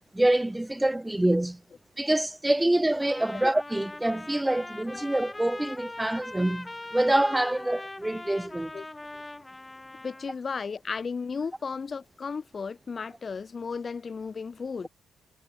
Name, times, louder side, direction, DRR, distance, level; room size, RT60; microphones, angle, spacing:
voice 1, 0.1-1.6 2.0-8.7, right 1 dB, 10° right, 0.7 m, -26 dB
Trumpet, 3.0-10.4, left 2 dB, 15° left, 5.0 m, -41 dB
voice 2, 10.0-14.9, left 5 dB, 40° left, 3.5 m, -34 dB
cardioid pair, 90°, 0 cm